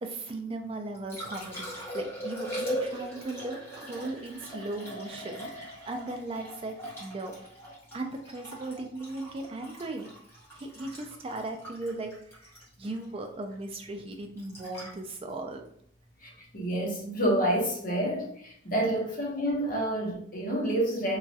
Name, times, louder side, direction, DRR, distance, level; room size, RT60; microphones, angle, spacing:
voice 1, 0.0-7.3 7.9-10.1 10.5-12.4 12.8-15.6, right 2 dB, 30° right, 4 dB, 0.3 m, -37 dB
Liquid, 0.7-16.8 19.6-19.7, equal, 15° left, 0.9 m, -40 dB
voice 2, 16.2-21.2, right 1 dB, 45° left, -2 dB, 0.8 m, -29 dB
3.0 x 2.3 x 2.7 m, 0.68 s
head